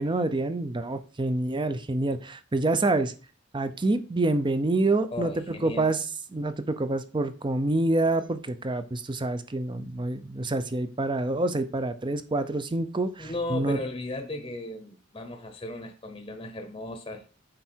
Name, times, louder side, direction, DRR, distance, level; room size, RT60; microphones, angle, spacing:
voice 1, 0.0-3.1 3.5-6.0 6.3-13.8, right 2 dB, 25° right, 0.6 m, -27 dB
voice 2, 5.1-5.9 13.2-17.3, left 1 dB, 25° left, 0.8 m, -36 dB
7.7 x 4.7 x 4.4 m
head